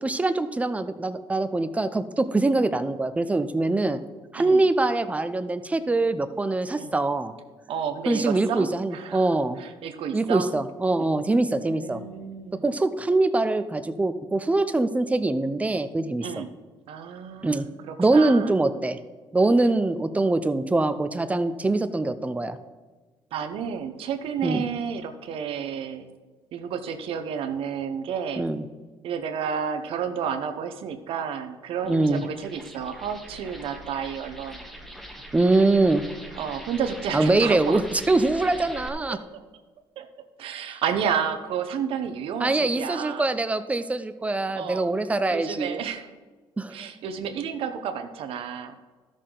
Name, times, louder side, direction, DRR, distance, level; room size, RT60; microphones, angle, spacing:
voice 1, 0.0-4.0 4.3-7.3 8.1-9.6 10.1-12.0 12.5-16.3 17.4-17.7 18.0-19.0 19.3-22.6 24.4-24.6 28.4-28.6 31.9-32.2 35.3-36.0 37.1-39.2 42.4-45.8 46.6-46.7, right 2 dB, 15° right, 11 dB, 0.6 m, -23 dB
voice 2, 7.7-9.3 9.6-10.5 11.0-12.7 16.2-16.5 16.9-18.5 23.3-26.1 26.5-28.5 29.0-34.6 36.3-37.8 39.1-39.4 40.0-40.1 40.4-43.3 44.5-44.9 45.3-46.1 46.7-48.8, right 7 dB, 75° right, 8 dB, 0.9 m, -31 dB
sound 1, 31.8-38.9, equal, ahead, 1.1 m, -42 dB
13.0 x 6.5 x 3.9 m, 1.3 s
cardioid pair, 105°, 10 cm